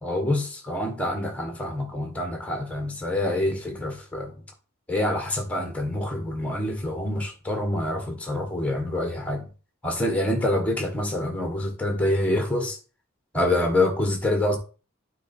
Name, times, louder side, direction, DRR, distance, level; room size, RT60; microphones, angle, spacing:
voice 1, 0.0-4.3 4.9-9.5 9.8-12.8 13.3-14.6, left 1 dB, 5° left, 1.6 m, -26 dB
9.1 x 3.9 x 4.5 m
head